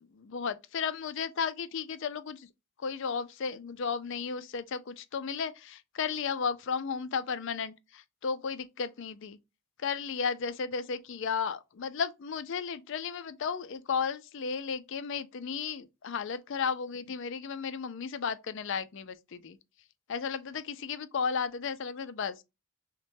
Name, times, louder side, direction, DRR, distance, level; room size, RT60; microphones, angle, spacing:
voice 1, 0.1-2.5 2.8-9.4 9.8-19.6 20.1-22.4, left 6 dB, 60° left, 0.4 m, -34 dB
5.9 x 2.2 x 2.6 m
head